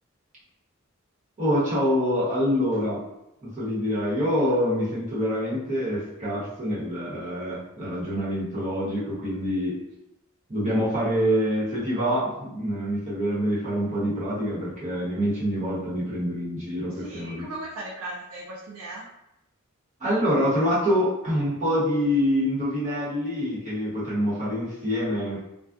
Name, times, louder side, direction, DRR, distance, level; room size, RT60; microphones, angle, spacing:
voice 1, 1.4-3.0 3.4-9.8 10.5-17.5 20.0-25.4, equal, 35° right, -9 dB, 1.1 m, -26 dB
voice 2, 16.9-19.1, right 2 dB, 75° right, -3 dB, 0.4 m, -37 dB
2.3 x 2.2 x 2.5 m, 0.87 s
head